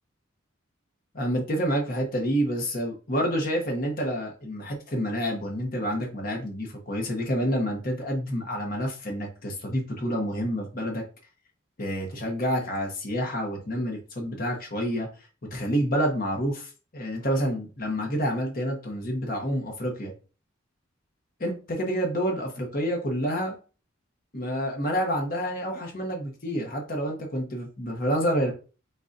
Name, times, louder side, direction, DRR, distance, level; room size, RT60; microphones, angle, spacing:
voice 1, 1.1-11.0 11.8-15.1 15.5-20.1 21.4-23.5 24.3-28.5, equal, 45° left, 1 dB, 1.0 m, -28 dB
3.8 x 2.6 x 3.9 m, 0.34 s
head